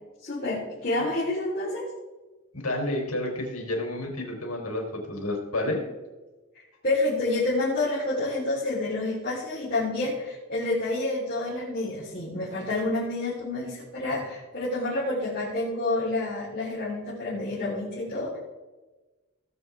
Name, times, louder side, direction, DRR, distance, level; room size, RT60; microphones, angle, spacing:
voice 1, 0.2-1.9 6.8-18.4, left 2 dB, 45° left, -9 dB, 3.9 m, -28 dB
voice 2, 2.5-5.8, left 1 dB, 85° left, 0 dB, 3.7 m, -30 dB
19.0 x 7.7 x 3.6 m, 1.2 s
head